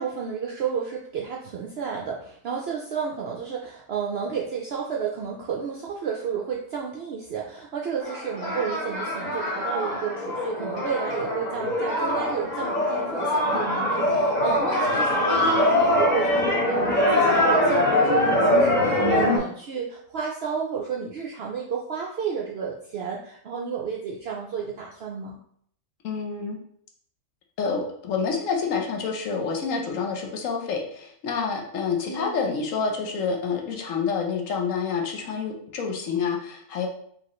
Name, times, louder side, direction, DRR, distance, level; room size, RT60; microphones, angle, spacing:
voice 1, 0.0-25.4 32.0-32.5, right 6 dB, 65° right, -1 dB, 0.6 m, -32 dB
sound 1, 8.0-19.4, left 1 dB, 35° left, 1.0 m, -23 dB
voice 2, 26.0-26.6 27.6-36.9, left 5 dB, 65° left, 1 dB, 1.1 m, -28 dB
4.8 x 3.0 x 3.0 m, 0.66 s
omnidirectional pair, 1.5 m